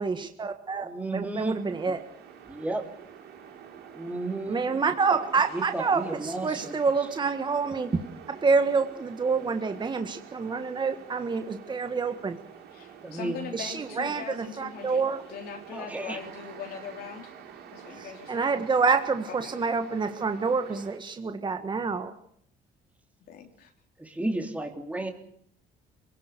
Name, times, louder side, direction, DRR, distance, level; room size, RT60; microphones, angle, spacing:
voice 1, 0.0-2.0 4.5-8.0 8.3-12.4 13.5-15.2 18.3-22.1, right 4 dB, 25° right, 8 dB, 1.7 m, -27 dB
voice 2, 0.8-1.6 2.5-2.9 3.9-4.6 5.5-6.7 13.0-13.4 15.7-16.2 24.0-25.1, right 2 dB, 10° right, 3 dB, 3.4 m, -32 dB
sound 1, 1.4-21.0, right 8 dB, 75° right, 7.1 m, -47 dB
voice 3, 12.7-15.0 15.3-17.3 17.7-18.5 19.3-19.5 23.3-23.7, left 7 dB, 65° left, 2 dB, 3.4 m, -41 dB
27.0 x 18.5 x 6.8 m, 0.64 s
cardioid pair, 110°, 17 cm